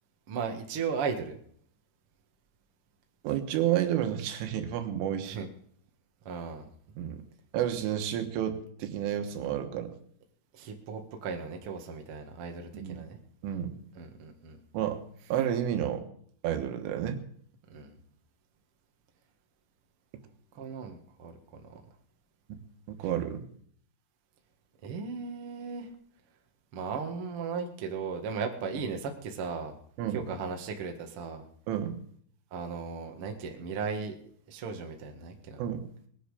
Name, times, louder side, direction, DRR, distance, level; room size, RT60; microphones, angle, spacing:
voice 1, 0.3-1.4 5.2-5.5 6.2-6.7 10.5-13.2 14.0-14.6 17.7-18.0 20.5-21.7 24.8-25.9 26.7-29.7 30.1-31.4 32.5-34.1 34.5-35.6, right 5 dB, 60° right, 3 dB, 1.4 m, -36 dB
voice 2, 3.2-5.4 7.0-7.2 7.5-9.9 12.7-13.0 13.4-13.8 14.7-15.0 15.3-16.1 16.4-17.3 22.5-22.6 22.9-23.5 30.0-30.3 31.7-32.0 35.6-36.1, right 10 dB, 90° right, 7 dB, 3.9 m, -31 dB
20.5 x 10.0 x 4.9 m, 0.62 s
omnidirectional pair, 5.5 m